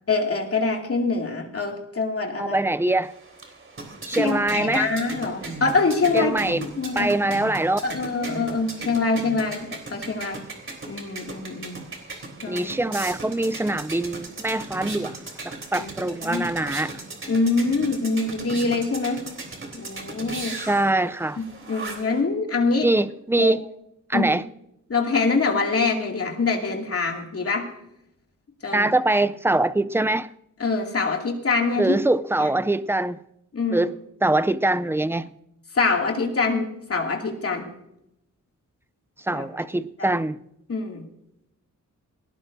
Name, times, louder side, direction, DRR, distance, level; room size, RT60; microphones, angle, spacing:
voice 1, 0.1-2.6 4.1-7.1 7.8-10.5 10.8-11.8 12.4-12.7 15.7-15.9 16.2-16.4 17.3-19.2 19.7-20.6 21.7-22.9 23.4-23.5 24.1-24.3 24.9-27.7 28.6-28.9 30.6-32.0 32.4-32.5 33.5-33.9 35.7-37.7 39.3-39.5 40.0-40.2 40.7-41.0, left 3 dB, 50° left, 2.4 m, -25 dB
voice 2, 2.4-3.1 4.1-4.9 6.1-6.6 7.0-7.8 12.5-15.2 15.4-16.9 20.5-21.4 22.8-23.6 24.1-24.4 28.7-30.3 31.8-33.2 33.7-33.9 34.2-35.3 39.2-40.4, right 2 dB, 10° right, 0.4 m, -23 dB
sound 1, 3.0-22.2, right 2 dB, 40° right, 3.5 m, -37 dB
20.0 x 17.5 x 2.6 m
wide cardioid pair, 160°, 31 cm